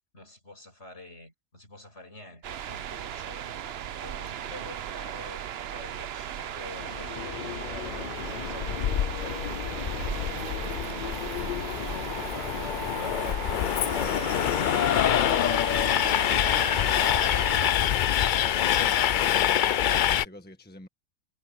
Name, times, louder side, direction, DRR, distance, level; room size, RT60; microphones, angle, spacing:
voice 1, 0.1-5.4 5.7-19.4, left 2 dB, 55° left, 6.3 m, -47 dB
sound 1, 2.4-17.7, right 10 dB, 55° right, 0.8 m, -37 dB
Train, 6.8-20.3, left 10 dB, 80° left, 0.4 m, -26 dB
voice 2, 18.8-20.9, left 1 dB, 5° left, 1.5 m, -48 dB
omnidirectional pair, 1.4 m